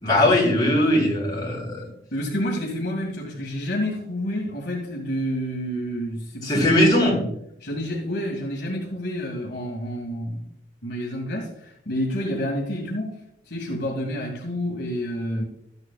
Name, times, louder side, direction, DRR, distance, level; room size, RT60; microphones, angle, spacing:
voice 1, 0.0-1.8 6.4-7.2, left 1 dB, 20° left, -5 dB, 3.5 m, -19 dB
voice 2, 2.1-7.3 7.6-10.4 10.8-13.2 13.5-15.4, equal, 60° left, -2 dB, 1.9 m, -29 dB
13.0 x 8.1 x 2.3 m, 0.74 s
head